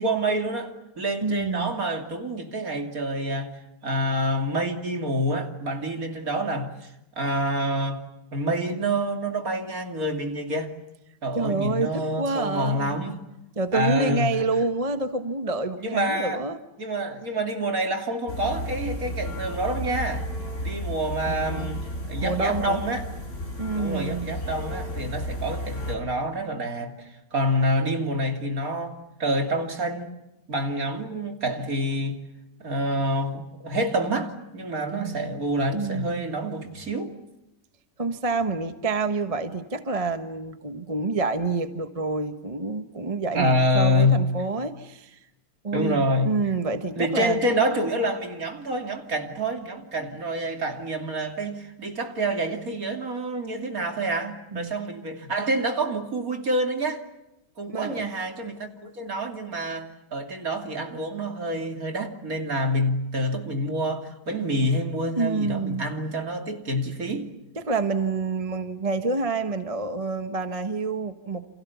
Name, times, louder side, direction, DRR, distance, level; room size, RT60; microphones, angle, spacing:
voice 1, 0.0-3.5 3.8-6.9 7.2-8.0 8.3-10.7 11.2-13.2 13.7-14.4 15.8-16.4 16.8-20.3 20.6-21.8 22.1-23.1 23.7-30.2 30.5-32.2 32.6-37.2 43.3-44.2 45.7-46.3 47.0-57.0 57.6-67.3, equal, 50° right, 3.2 m, -27 dB
voice 2, 1.2-1.7 11.3-13.0 13.6-16.6 21.3-21.8 22.2-22.8 23.6-24.3 34.9-35.4 35.7-36.2 38.0-45.2 45.6-47.5 54.5-54.8 57.7-58.1 65.2-65.8 67.6-71.5, right 3 dB, 25° right, 1.1 m, -28 dB
sound 1, 18.3-25.9, equal, 40° left, 5.1 m, -33 dB
29.5 x 27.5 x 7.1 m
omnidirectional pair, 1.9 m